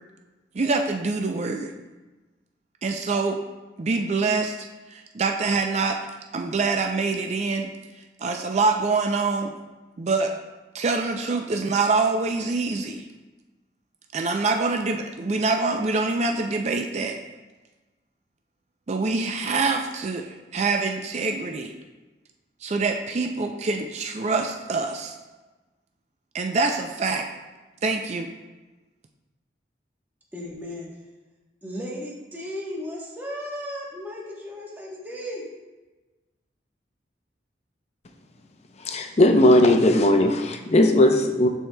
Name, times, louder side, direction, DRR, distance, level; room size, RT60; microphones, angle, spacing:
voice 1, 0.5-1.7 2.8-3.4 3.8-4.5 4.9-6.0 6.3-7.7 8.2-9.5 10.0-10.3 10.7-13.1 14.1-17.2 18.9-21.7 22.6-25.1 26.3-27.2 27.8-28.3, right 3 dB, 40° right, 0.4 m, -25 dB
voice 2, 30.3-30.9 31.6-35.5, equal, 10° right, 1.1 m, -35 dB
voice 3, 38.9-41.5, left 1 dB, 40° left, 0.6 m, -18 dB
13.5 x 4.5 x 2.2 m
head